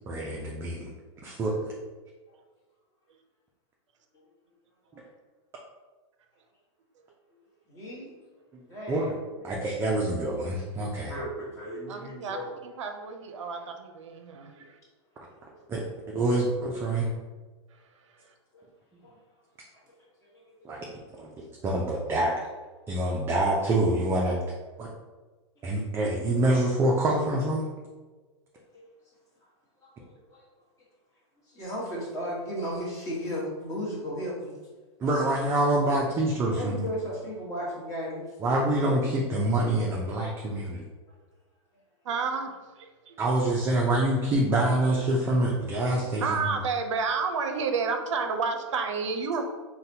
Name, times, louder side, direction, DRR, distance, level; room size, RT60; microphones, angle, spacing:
voice 1, 0.1-0.9 1.2-1.7 8.5-8.6 8.9-9.1 9.4-11.1 15.7-15.8 16.1-17.1 20.6-20.8 21.2-22.3 22.9-24.4 24.8-24.9 25.6-27.6 35.0-36.9 38.4-40.8 43.2-46.4, right 1 dB, 15° right, -2 dB, 0.3 m, -26 dB
voice 2, 7.7-8.1 8.7-9.1 11.1-12.5 15.3-15.4 18.5-18.6 19.0-19.1 20.3-20.4 28.7-28.8 29.8-30.4 31.5-34.6 36.5-38.3, equal, 20° left, -6 dB, 1.1 m, -35 dB
voice 3, 11.9-14.8 42.0-43.2 46.2-49.4, right 5 dB, 80° right, 5 dB, 0.5 m, -31 dB
3.9 x 2.1 x 2.7 m, 1.3 s
hypercardioid pair, 130°, 16 cm